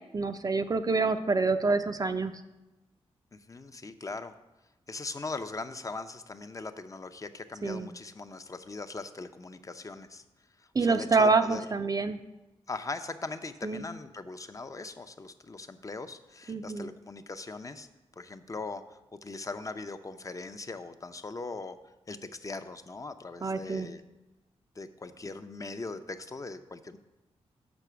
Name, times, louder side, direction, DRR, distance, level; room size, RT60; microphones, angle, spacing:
voice 1, 0.1-2.3 7.6-7.9 10.7-12.2 13.6-13.8 16.5-16.9 23.4-23.9, right 4 dB, 35° right, 8 dB, 0.4 m, -27 dB
voice 2, 3.3-4.3 4.9-10.2 10.6-11.6 12.7-17.9 18.2-21.8 22.1-24.0 24.8-27.0, left 3 dB, 30° left, 10 dB, 0.6 m, -40 dB
6.1 x 5.9 x 6.8 m, 1.0 s
cardioid pair, 75°, 11 cm